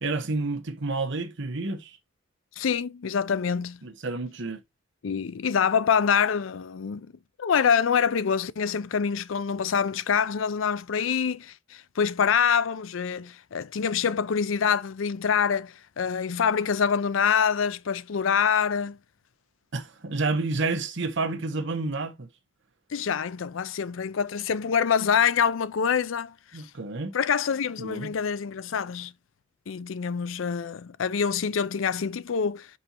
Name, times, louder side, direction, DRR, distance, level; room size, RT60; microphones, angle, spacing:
voice 1, 0.0-2.0 3.8-4.6 19.7-22.3 26.5-27.1 27.8-28.1, right 3 dB, 65° right, 1.1 m, -30 dB
voice 2, 2.6-3.8 5.0-7.1 7.4-19.0 22.9-26.6 27.1-29.1 29.7-32.7, left 7 dB, 75° left, 0.5 m, -25 dB
5.5 x 4.1 x 4.4 m
head